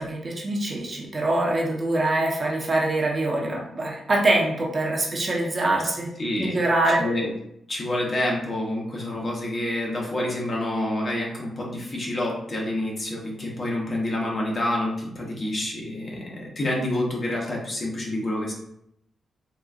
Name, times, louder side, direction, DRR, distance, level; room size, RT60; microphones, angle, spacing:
voice 1, 0.0-7.0, right 2 dB, 35° right, -1 dB, 0.6 m, -24 dB
voice 2, 6.2-6.6 7.0-7.3 7.7-18.5, left 1 dB, 35° left, -2 dB, 0.8 m, -28 dB
3.8 x 2.3 x 2.4 m, 0.76 s
cardioid pair, 115°, 0 cm